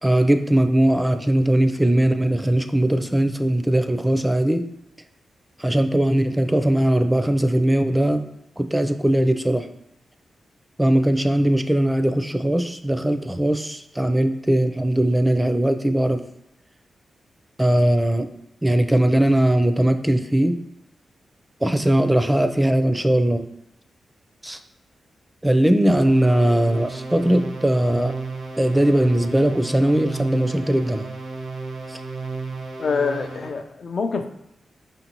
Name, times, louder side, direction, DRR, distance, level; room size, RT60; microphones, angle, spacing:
voice 1, 0.0-4.7 5.6-8.3 8.6-9.7 10.8-16.2 17.6-18.3 18.6-20.5 21.6-23.4 24.4-24.6 25.4-28.1 28.6-31.1 31.9-32.0, right 1 dB, 10° right, 8 dB, 0.5 m, -19 dB
sound 1, 26.1-33.6, right 3 dB, 80° right, 0.6 m, -33 dB
voice 2, 32.8-34.3, left 5 dB, 65° left, 6 dB, 0.5 m, -25 dB
5.2 x 2.6 x 2.9 m, 0.80 s
cardioid pair, 50°, 0 cm